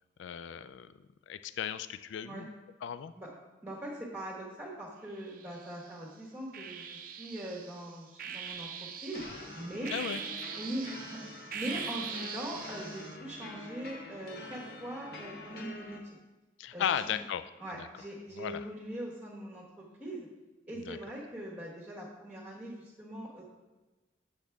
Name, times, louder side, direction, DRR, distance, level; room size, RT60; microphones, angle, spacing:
voice 1, 0.2-0.9 1.3-2.5 2.8-3.1 9.9-10.2 16.6-17.5 17.8-17.9 18.3-18.7 20.8-21.0, left 8 dB, 90° left, 12 dB, 0.3 m, -35 dB
voice 2, 3.6-8.7 9.0-9.2 9.5-9.9 10.6-16.0 16.7-17.1 17.6-20.3 20.7-23.4, right 1 dB, 10° right, -4 dB, 1.3 m, -41 dB
sound 1, 5.2-5.9 6.5-13.2, right 7 dB, 50° right, 0.6 m, -42 dB
sound 2, 9.1-16.0, left 2 dB, 55° left, 0.9 m, -46 dB
8.3 x 6.6 x 3.5 m, 1.1 s
head